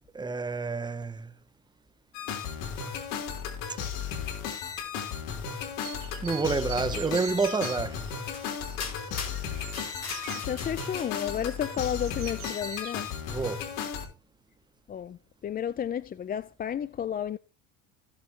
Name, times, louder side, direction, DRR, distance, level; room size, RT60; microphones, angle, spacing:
voice 1, 0.1-1.3 3.7-3.8 6.2-8.0 13.3-13.7, right 4 dB, 10° right, 0.7 m, -29 dB
sound 1, 2.1-14.1, left 7 dB, 75° left, 3.9 m, -35 dB
sound 2, 5.8-12.9, right 13 dB, 50° right, 1.5 m, -45 dB
sound 3, 8.3-8.5 8.8-11.3, left 6 dB, 40° left, 4.7 m, -40 dB
voice 2, 10.4-13.1 14.9-17.4, left 9 dB, 25° left, 0.4 m, -32 dB
16.0 x 7.2 x 2.9 m
supercardioid pair, 105°, 42 cm